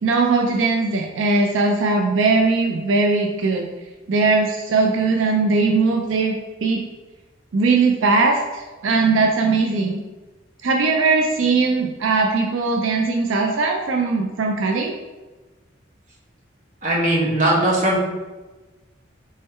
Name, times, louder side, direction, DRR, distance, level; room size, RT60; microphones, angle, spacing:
voice 1, 0.0-3.7 4.1-6.8 7.5-10.0 10.6-14.9, right 3 dB, 80° right, 2 dB, 0.4 m, -19 dB
voice 2, 16.8-18.0, right 1 dB, 40° right, -5 dB, 1.2 m, -19 dB
3.6 x 3.2 x 4.2 m, 1.2 s
head